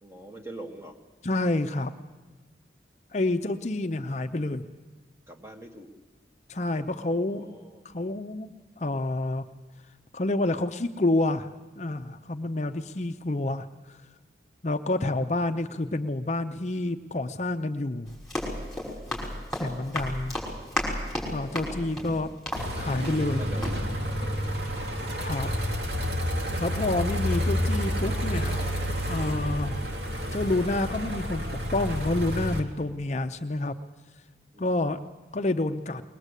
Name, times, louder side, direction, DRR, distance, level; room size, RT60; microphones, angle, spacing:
voice 1, 0.0-1.0 5.3-5.9 7.0-7.8 19.3-19.6 21.3-21.8 23.0-23.7 24.1-24.8 28.5-28.9 34.5-35.0, right 1 dB, 15° right, 2 dB, 1.9 m, -45 dB
voice 2, 1.2-1.9 3.1-4.6 6.5-7.5 7.8-9.4 10.1-11.5 11.8-13.7 14.6-18.2 19.6-20.4 21.3-22.3 22.7-23.4 25.2-25.5 26.6-28.6 29.1-29.8 30.3-33.8 34.6-35.0 35.3-36.0, left 2 dB, 40° left, 7 dB, 0.7 m, -28 dB
Run, 18.1-23.4 23.6-23.8, left 1 dB, ahead, 5.7 m, -33 dB
sound 1, 22.5-32.6, equal, 70° right, 3.0 m, -29 dB
21.0 x 20.0 x 8.2 m, 1.3 s
head